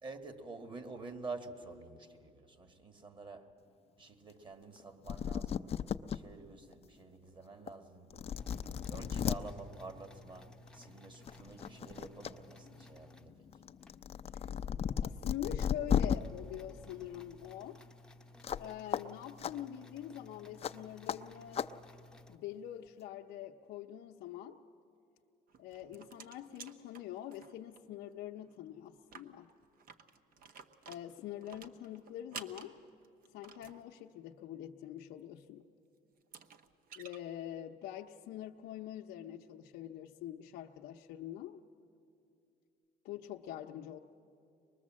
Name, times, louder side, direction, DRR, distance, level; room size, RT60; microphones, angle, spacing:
voice 1, 0.0-3.6 4.0-8.4 8.9-13.6, right 3 dB, 30° right, 1.8 m, -48 dB
sound 1, 4.8-4.9 5.1-6.2 6.7-6.8 7.7-7.8 8.1-9.4 10.7-10.9 11.3-12.3 12.7-16.2 18.4-18.6 18.9-19.0 19.4-19.5 20.6-20.7 21.1-21.2 21.5-21.7, left 8 dB, 35° left, 0.5 m, -34 dB
sound 2, 8.3-14.0 14.5-14.6 15.1-15.2 15.4-22.4, left 2 dB, 5° left, 0.8 m, -57 dB
voice 2, 15.0-17.8 18.6-21.7 22.3-24.6 25.6-29.5 30.9-32.8 33.3-35.6 37.0-41.6 43.0-44.0, left 11 dB, 80° left, 0.7 m, -44 dB
sound 3, 25.5-27.8 28.1-28.2 28.5-28.6 29.0-33.8 35.6-35.7 36.2-37.2, right 5 dB, 60° right, 1.0 m, -52 dB
24.0 x 21.0 x 7.5 m
cardioid pair, 110°, 17 cm